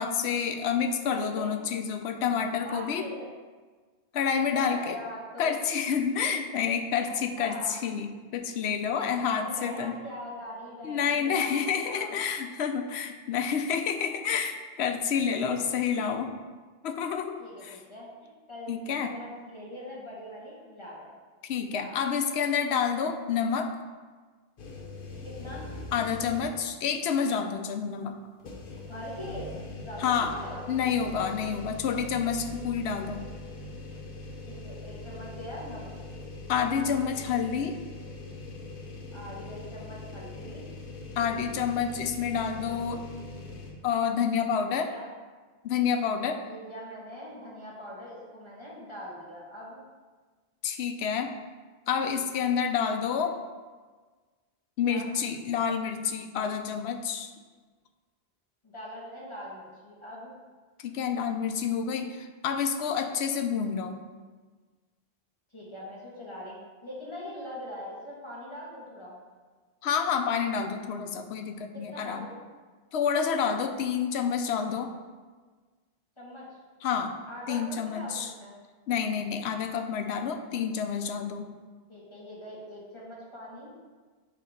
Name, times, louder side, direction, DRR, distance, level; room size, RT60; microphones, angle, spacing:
voice 1, 0.0-3.1 4.1-5.0 5.4-10.0 10.8-16.3 16.8-17.4 17.6-17.8 18.7-19.1 21.4-23.7 25.9-28.2 30.0-30.3 30.7-33.2 36.5-37.8 41.2-43.0 43.8-44.9 45.6-46.4 50.6-51.3 51.9-53.4 54.8-57.3 60.8-64.0 69.8-72.3 72.9-74.9 76.8-77.2 77.5-78.3 78.9-81.5, left 7 dB, 80° left, 6 dB, 0.8 m, -29 dB
voice 2, 1.1-1.5 2.6-3.3 4.5-5.6 7.1-7.8 9.0-12.1 17.4-18.1 18.5-18.7 19.0-21.1 21.8-22.0 25.2-25.7 28.9-30.7 34.5-35.9 39.1-40.7 44.9-45.1 46.4-49.8 54.8-55.1 58.6-60.3 65.5-69.2 71.7-72.3 76.2-76.6 77.3-78.5 81.9-83.8, equal, 25° left, -6 dB, 1.4 m, -42 dB
sound 1, 24.6-26.7 27.2-27.3 28.4-43.7, left 2 dB, 55° left, 0.9 m, -42 dB
6.9 x 2.9 x 5.0 m, 1.4 s
omnidirectional pair, 1.1 m